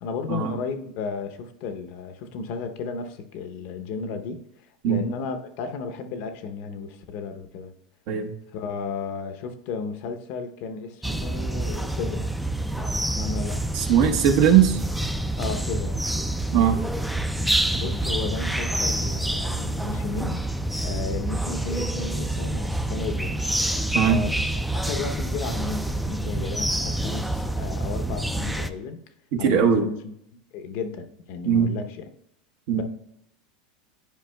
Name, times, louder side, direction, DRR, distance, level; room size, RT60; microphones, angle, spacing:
voice 1, 0.0-4.4 4.8-7.7 8.5-12.3 12.8-13.6 15.4-16.1 17.8-20.4 20.8-23.4 24.0-24.5 24.7-29.0 29.4-30.1 30.5-32.1 32.7-32.8, left 5 dB, 55° left, 0.7 m, -34 dB
sound 1, 11.0-28.7, right 1 dB, ahead, 0.3 m, -27 dB
voice 2, 13.7-14.8 16.5-16.8 23.9-24.2 29.3-29.8 31.4-31.7 32.7-32.8, right 8 dB, 60° right, 0.9 m, -19 dB
10.5 x 4.7 x 2.2 m
supercardioid pair, 120°, 4 cm